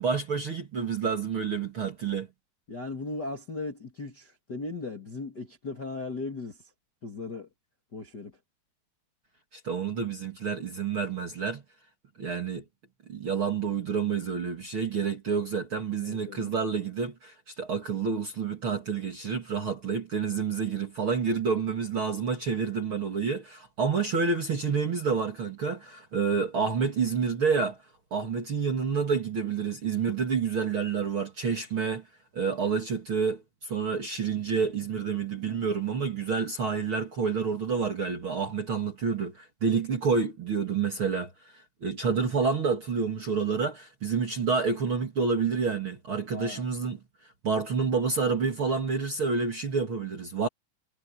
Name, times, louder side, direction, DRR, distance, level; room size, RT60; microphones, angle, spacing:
voice 1, 0.0-2.3 9.5-11.6 12.2-12.6 13.1-27.8 28.1-32.0 32.3-47.0 47.4-50.5, right 5 dB, 40° right, 2.3 m, -29 dB
voice 2, 2.7-6.6 7.0-7.5 7.9-8.3 16.0-16.5 46.3-46.6, left 3 dB, 35° left, 1.9 m, -37 dB
omnidirectional pair, 5.0 m